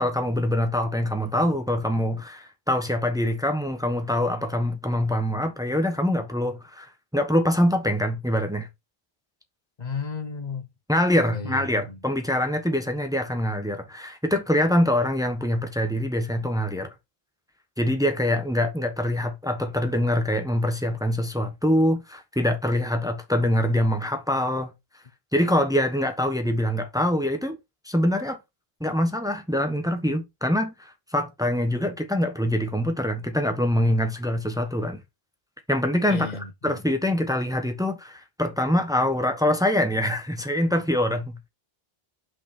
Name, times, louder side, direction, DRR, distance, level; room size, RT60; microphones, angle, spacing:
voice 1, 0.0-8.7 10.9-16.9 17.8-24.7 25.3-27.6 27.8-28.4 28.8-35.0 35.7-36.3 36.6-41.5, left 1 dB, 5° right, 1.1 m, -24 dB
voice 2, 9.8-10.7 11.3-12.0 36.1-36.8, left 5 dB, 45° left, 1.2 m, -34 dB
5.9 x 5.5 x 4.3 m
omnidirectional pair, 1.0 m